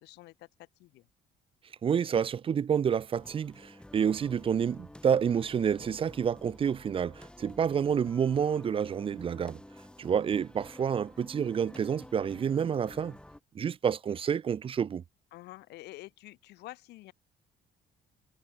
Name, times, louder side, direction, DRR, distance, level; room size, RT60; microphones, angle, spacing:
voice 1, 0.0-1.1 5.8-6.0 15.3-17.1, left 18 dB, 80° left, 0.9 m, -49 dB
voice 2, 1.8-9.6 10.0-13.2 13.5-15.0, right 7 dB, 30° right, 0.5 m, -29 dB
sound 1, 3.1-13.4, left 1 dB, 5° left, 1.8 m, -51 dB
cardioid pair, 110°, 17 cm